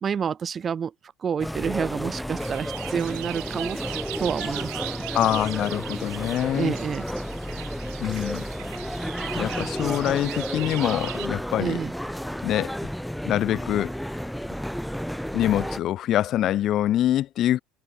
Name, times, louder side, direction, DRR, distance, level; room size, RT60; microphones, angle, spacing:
voice 1, 0.0-0.9 1.2-3.8 4.2-4.8 6.5-7.1 9.8-9.9 11.6-11.9, right 7 dB, 35° right, 0.8 m, -28 dB
sound 1, 1.4-15.8, equal, ahead, 0.8 m, -32 dB
sound 2, 2.4-11.3, right 38 dB, 80° right, 6.2 m, -39 dB
voice 2, 5.1-6.7 8.0-8.4 9.4-11.8 12.4-12.9 13.2-13.9 15.3-17.6, left 12 dB, 55° left, 1.2 m, -25 dB
supercardioid pair, 90°, 0 cm